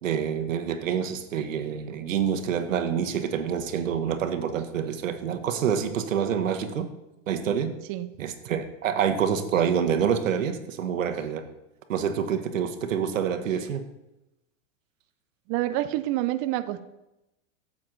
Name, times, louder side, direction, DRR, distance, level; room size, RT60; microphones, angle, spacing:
voice 1, 0.0-6.9 7.3-7.7 8.2-11.5 11.9-13.8, right 8 dB, 85° right, 8 dB, 1.1 m, -27 dB
voice 2, 15.5-16.8, right 15 dB, 30° right, 10 dB, 0.4 m, -28 dB
8.9 x 7.4 x 3.8 m, 0.93 s
hypercardioid pair, 120°, 38 cm